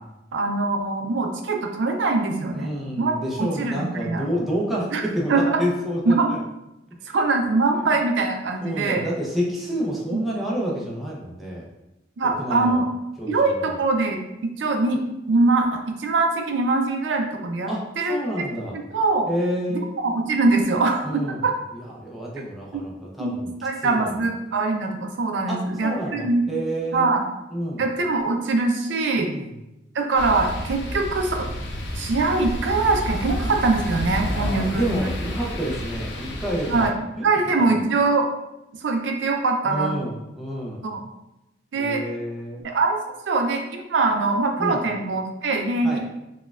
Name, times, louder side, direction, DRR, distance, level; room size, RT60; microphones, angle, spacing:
voice 1, 0.3-2.7 3.0-3.1 3.4-4.2 4.9-5.0 5.3-5.6 6.1-6.3 7.1-9.0 10.1-10.2 12.2-12.9 13.3-15.0 15.3-17.7 18.0-18.5 18.7-19.3 19.7-21.5 22.7-22.8 23.2-26.4 26.9-27.3 27.8-29.3 29.9-31.5 32.0-35.1 36.7-36.9 37.2-38.3 38.8-39.9 40.8-41.0 41.7-42.0 42.6-43.0 43.3-46.0, right 3 dB, 75° right, 3 dB, 0.4 m, -23 dB
voice 2, 2.5-6.4 7.0-7.2 7.7-7.9 8.6-11.7 12.2-12.8 13.2-13.8 17.7-18.7 19.3-19.9 21.0-21.4 21.7-23.5 23.8-24.3 25.5-27.1 27.5-27.8 29.2-29.5 34.2-36.9 37.2-37.3 37.6-37.9 39.7-40.9 41.7-42.7 44.6-44.8 45.8-46.0, equal, ahead, -5 dB, 0.5 m, -29 dB
sound 1, 30.2-36.9, equal, 70° left, 0.5 m, -30 dB
4.1 x 2.2 x 2.3 m, 0.93 s
head